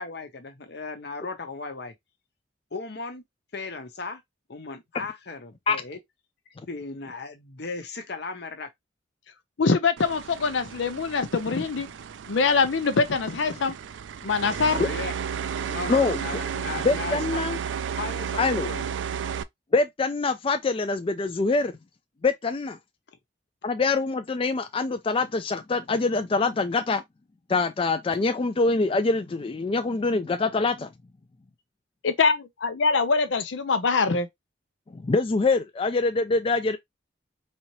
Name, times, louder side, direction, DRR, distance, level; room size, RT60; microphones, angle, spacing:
voice 1, 0.0-1.9 2.7-3.2 3.5-4.2 4.5-6.0 6.7-8.7 14.7-15.2 15.6-17.4 18.0-18.9, left 3 dB, 60° left, 0.9 m, -36 dB
voice 2, 9.6-11.9 12.3-13.8 14.2-14.8 32.0-34.3, left 4 dB, 85° left, 0.6 m, -23 dB
sound 1, 10.0-19.4, right 7 dB, 80° right, 0.4 m, -33 dB
voice 3, 16.8-17.6 18.4-18.7 19.7-21.8 22.2-22.8 23.6-27.0 27.5-30.9 34.9-36.8, left 3 dB, 30° left, 0.4 m, -24 dB
4.2 x 2.8 x 3.0 m
head